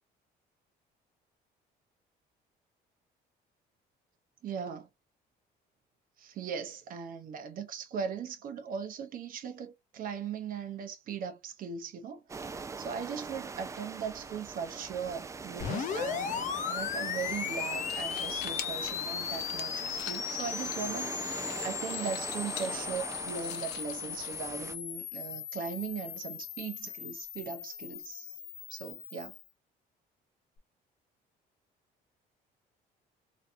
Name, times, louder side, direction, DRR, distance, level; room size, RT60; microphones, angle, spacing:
voice 1, 4.4-4.9 6.2-12.2 12.5-28.4 28.7-29.3, right 7 dB, 55° right, 0.7 m, -39 dB
sound 1, 12.3-24.7, right 4 dB, 20° right, 0.4 m, -42 dB
sound 2, 15.6-29.4, left 9 dB, 50° left, 0.5 m, -37 dB
sound 3, 17.8-24.7, left 11 dB, 90° left, 0.6 m, -46 dB
3.1 x 2.7 x 2.5 m
cardioid pair, 110°, 17 cm